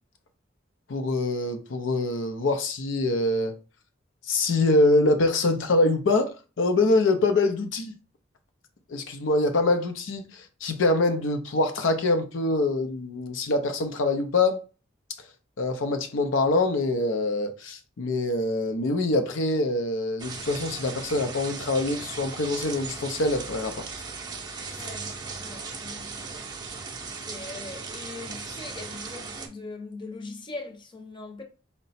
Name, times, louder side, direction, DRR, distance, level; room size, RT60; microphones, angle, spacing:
voice 1, 0.9-3.6 4.3-7.9 8.9-14.6 15.6-23.8, left 2 dB, 80° left, 0.5 m, -24 dB
sound 1, 20.2-29.5, right 4 dB, 20° right, 0.6 m, -37 dB
voice 2, 24.7-26.4 27.2-31.4, left 3 dB, 25° left, 0.7 m, -41 dB
3.8 x 2.1 x 4.1 m
head